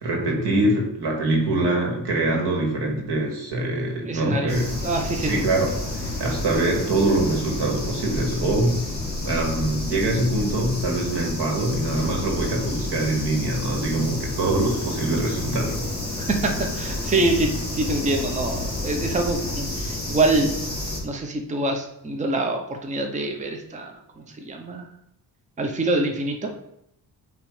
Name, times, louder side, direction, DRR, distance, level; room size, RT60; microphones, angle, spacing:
voice 1, 0.0-4.7 5.2-5.7 6.0-8.8 9.2-15.9 16.2-16.3, right 2 dB, 85° right, 0 dB, 2.0 m, -24 dB
voice 2, 4.1-4.5 4.8-5.4 16.2-20.5 21.0-24.8 25.6-26.5, right 2 dB, 20° right, 3 dB, 0.7 m, -25 dB
sound 1, 4.5-21.0, left 2 dB, 25° left, 2.9 m, -30 dB
8.6 x 3.1 x 4.9 m, 0.76 s
wide cardioid pair, 155°, 40 cm